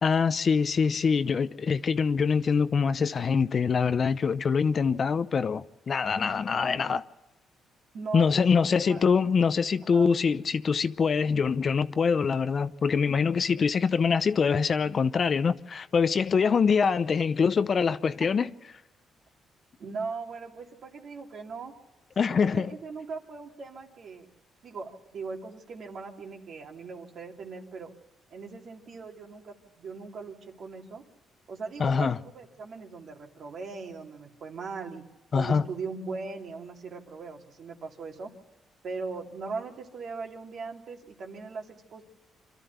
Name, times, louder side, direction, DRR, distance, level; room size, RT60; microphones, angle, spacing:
voice 1, 0.0-7.0 8.1-18.5 22.2-22.7 31.8-32.2 35.3-35.6, left 5 dB, 45° left, 0.7 m, -24 dB
voice 2, 7.9-9.0 9.8-10.2 19.8-21.7 22.2-24.3 24.6-27.9 28.3-31.0 31.5-35.0 35.3-38.3 38.8-42.0, right 4 dB, 60° right, 2.7 m, -39 dB
26.0 x 13.0 x 8.2 m
cardioid pair, 90°, 0 cm